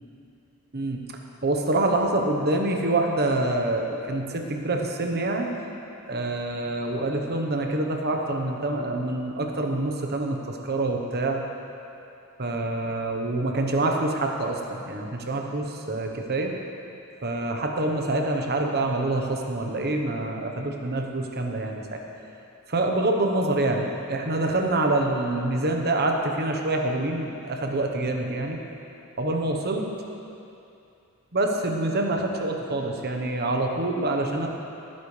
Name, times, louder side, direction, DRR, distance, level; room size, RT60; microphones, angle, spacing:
voice 1, 1.4-5.5 6.1-11.4 12.4-16.5 17.2-22.0 22.7-28.6 29.2-29.9 31.3-34.5, right 2 dB, 45° right, 2 dB, 1.2 m, -26 dB
19.0 x 9.8 x 3.4 m, 2.7 s
head